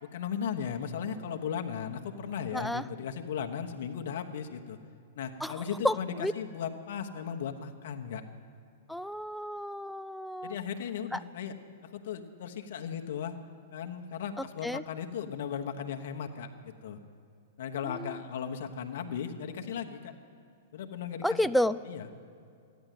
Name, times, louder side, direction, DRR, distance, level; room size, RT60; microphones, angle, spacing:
voice 1, 0.0-4.8 5.1-8.2 10.4-11.6 11.8-13.4 13.7-17.0 17.6-20.1 20.7-21.4 21.8-22.1, left 7 dB, 60° left, 5 dB, 1.2 m, -36 dB
voice 2, 2.5-2.8 5.4-5.5 5.8-6.3 8.9-10.6 11.1-11.2 14.6-14.8 18.0-18.2 21.2-21.8, left 1 dB, ahead, 14 dB, 0.3 m, -30 dB
14.0 x 10.5 x 9.3 m, 2.4 s
figure-of-eight pair, 110°, 0 cm